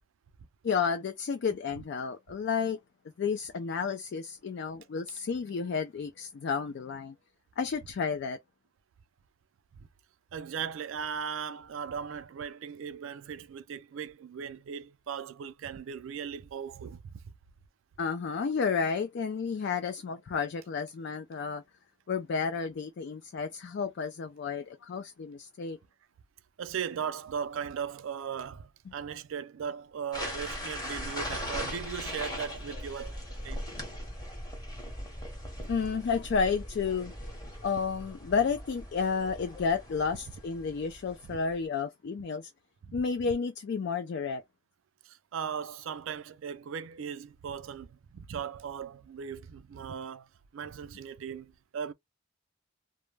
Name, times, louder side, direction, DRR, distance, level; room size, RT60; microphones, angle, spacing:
voice 1, 0.6-2.8 3.2-7.2 7.6-8.4 18.0-21.6 22.1-25.8 35.7-37.3 37.6-42.5 42.9-44.4, left 5 dB, 50° left, 0.3 m, -31 dB
voice 2, 10.3-17.1 26.6-33.6 41.3-41.4 42.8-43.0 45.0-51.9, right 7 dB, 65° right, 0.3 m, -38 dB
sound 1, 30.1-41.5, left 1 dB, 20° left, 0.8 m, -40 dB
2.1 x 2.1 x 3.2 m
head